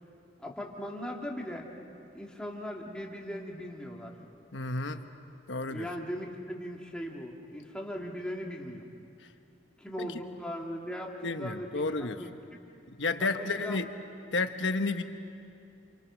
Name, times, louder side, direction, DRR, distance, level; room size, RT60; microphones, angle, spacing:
voice 1, 0.4-1.7 2.1-4.1 5.7-8.9 9.8-12.3 13.2-13.8, equal, 5° left, -1 dB, 2.4 m, -39 dB
voice 2, 4.5-5.1 5.5-5.9 10.0-10.1 11.2-12.2 13.0-13.9 14.3-15.0, left 3 dB, 80° left, 7 dB, 1.3 m, -31 dB
28.0 x 27.0 x 6.4 m, 2.5 s
head